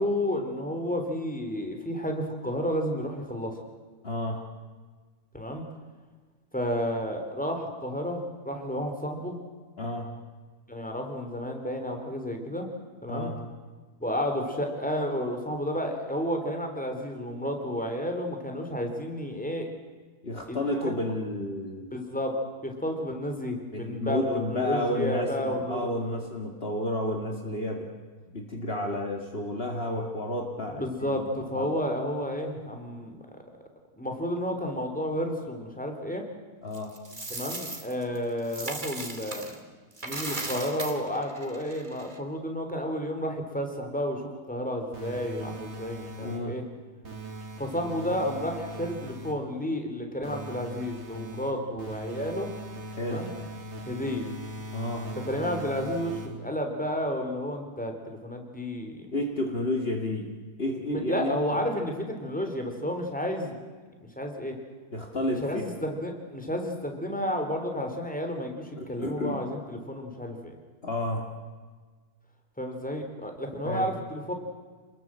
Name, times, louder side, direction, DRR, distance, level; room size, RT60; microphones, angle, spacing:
voice 1, 0.0-3.6 5.3-5.6 6.5-9.4 10.7-12.7 13.0-13.3 14.0-19.7 20.5-20.9 21.9-22.3 22.6-25.9 30.7-33.2 34.0-36.2 37.3-39.6 40.0-46.6 47.6-52.5 53.0-53.3 53.9-54.3 55.3-59.1 60.9-63.6 64.2-64.5 65.4-70.5 72.6-74.3, equal, 5° left, 3 dB, 3.6 m, -31 dB
voice 2, 4.0-4.4 9.8-10.1 13.1-13.4 20.2-21.9 23.7-27.9 28.3-31.2 31.5-31.7 36.6-36.9 46.2-46.6 53.0-53.3 54.7-55.1 59.1-60.3 60.6-61.4 64.9-65.6 68.7-69.4 70.8-71.3 73.6-73.9, left 1 dB, 40° left, 2 dB, 2.4 m, -31 dB
Coin (dropping), 36.7-39.6 39.9-42.2, right 2 dB, 30° right, 2.5 m, -37 dB
sound 1, 44.9-46.6 47.0-49.5 50.2-56.6, right 1 dB, 45° right, 2.2 m, -40 dB
28.5 x 20.5 x 7.6 m, 1.5 s
omnidirectional pair, 1.6 m